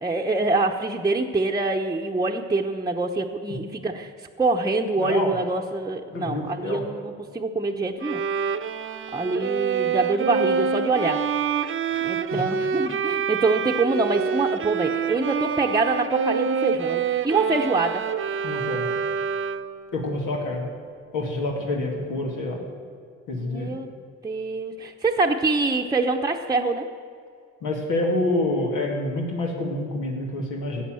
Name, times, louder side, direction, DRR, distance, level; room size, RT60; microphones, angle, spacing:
voice 1, 0.0-4.1 4.4-8.2 9.1-11.2 12.0-18.0 23.4-23.9 24.2-26.9, right 3 dB, 15° right, 1 dB, 0.8 m, -25 dB
voice 2, 5.0-5.3 6.1-6.8 11.9-12.0 12.3-12.4 18.4-18.9 19.9-20.7 21.1-22.6 23.3-23.7 27.6-30.8, left 2 dB, 90° left, 0 dB, 2.3 m, -27 dB
Bowed string instrument, 8.0-19.9, right 7 dB, 45° right, 0.8 m, -26 dB
14.0 x 8.5 x 7.7 m, 2.3 s
cardioid pair, 90°, 30 cm